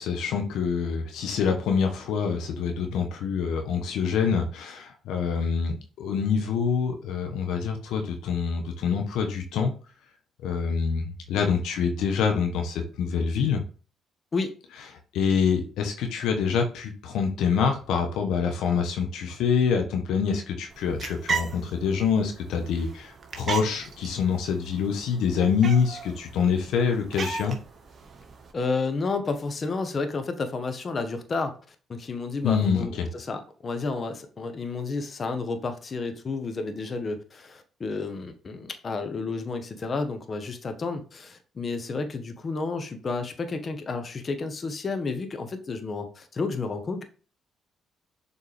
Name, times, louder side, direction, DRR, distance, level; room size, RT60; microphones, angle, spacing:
voice 1, 0.0-9.7 10.4-13.6 15.1-27.6 32.4-33.1, left 6 dB, 75° left, 4 dB, 1.2 m, -26 dB
sound 1, 20.7-28.5, right 5 dB, 45° right, 1.6 m, -36 dB
voice 2, 28.5-47.0, left 4 dB, 45° left, 7 dB, 1.3 m, -31 dB
7.1 x 4.4 x 3.5 m, 0.36 s
supercardioid pair, 55°, 0 cm